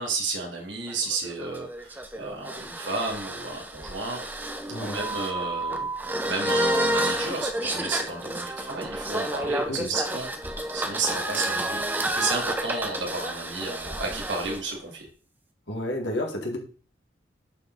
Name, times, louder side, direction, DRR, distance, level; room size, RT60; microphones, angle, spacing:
voice 1, 0.0-5.9 6.2-10.3 10.7-15.1, right 3 dB, 80° right, 0 dB, 2.8 m, -32 dB
sound 1, 0.9-14.6, right 1 dB, 10° right, 0.7 m, -30 dB
voice 2, 4.7-5.0 9.7-9.9 15.7-16.6, left 1 dB, 70° left, 1 dB, 2.0 m, -30 dB
11.0 x 4.8 x 4.1 m, 0.40 s
head